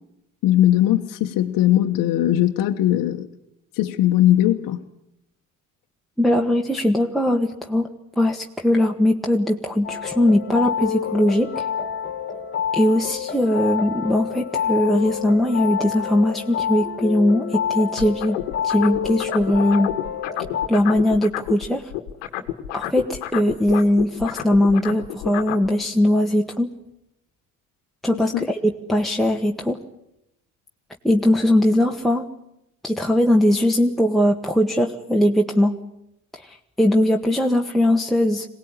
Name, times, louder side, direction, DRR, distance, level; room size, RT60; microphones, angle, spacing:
voice 1, 0.4-3.3 3.7-4.8 28.1-28.5, left 13 dB, 70° left, 4 dB, 1.3 m, -19 dB
voice 2, 6.2-7.9 8.1-11.6 12.7-18.4 18.6-19.9 20.7-21.9 22.7-26.7 28.0-29.8 31.0-32.2 32.8-35.7 36.3-38.5, left 1 dB, ahead, 0 dB, 1.7 m, -20 dB
sound 1, 9.8-20.7, left 8 dB, 35° left, 2.0 m, -28 dB
sound 2, 18.0-21.6 21.9-25.7, left 13 dB, 90° left, 1.7 m, -29 dB
23.0 x 18.5 x 9.9 m, 0.84 s
supercardioid pair, 70°, 35 cm